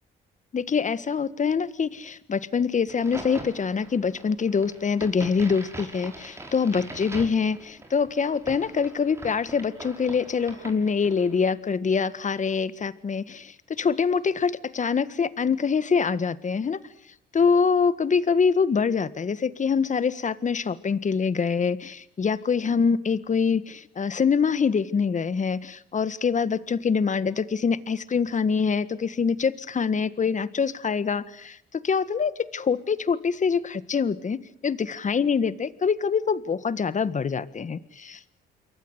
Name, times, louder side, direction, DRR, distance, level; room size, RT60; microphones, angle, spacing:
voice 1, 0.5-16.8 17.3-38.4, left 5 dB, 40° left, 16 dB, 1.6 m, -25 dB
Crack, 2.9-11.4, right 2 dB, 15° right, 5.6 m, -42 dB
28.0 x 23.0 x 8.1 m, 0.69 s
cardioid pair, 90°, 20 cm